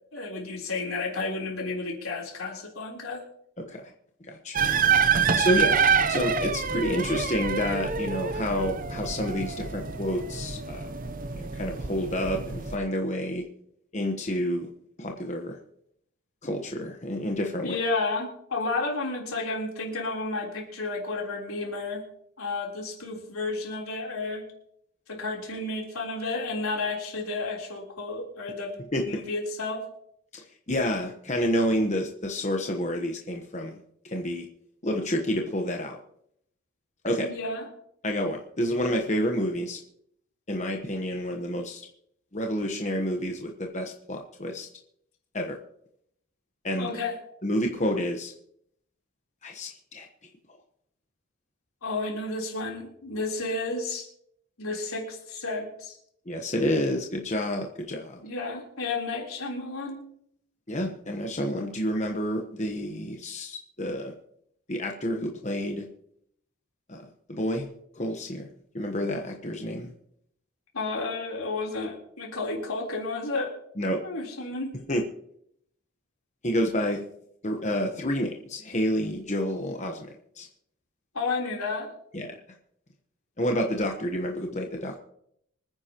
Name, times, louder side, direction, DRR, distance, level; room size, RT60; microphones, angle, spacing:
voice 1, 0.1-3.2 17.6-22.0 22.4-24.5 25.1-29.8 37.2-37.6 46.8-47.1 51.8-54.1 54.6-56.0 58.2-60.0 70.7-73.5 74.0-74.7 81.1-81.9, left 3 dB, 80° left, -1 dB, 3.7 m, -32 dB
voice 2, 4.3-4.6 5.4-5.8 6.1-10.9 11.3-13.4 13.9-14.7 15.0-15.6 16.4-17.8 28.9-29.2 30.3-33.8 34.0-34.5 34.8-36.0 37.0-37.3 38.0-39.8 40.5-41.9 42.3-44.7 45.3-45.6 46.6-46.9 47.4-48.3 49.4-50.1 56.3-58.2 60.7-64.1 64.7-65.9 66.9-67.7 67.9-68.5 68.7-69.9 73.8-74.0 74.9-75.0 76.4-77.0 77.4-80.1 80.4-80.5 82.1-82.3 83.4-85.0, equal, 30° left, 2 dB, 1.1 m, -29 dB
sound 1, 4.5-12.8, right 6 dB, 40° right, 0.7 m, -26 dB
25.5 x 9.7 x 3.0 m, 0.71 s
head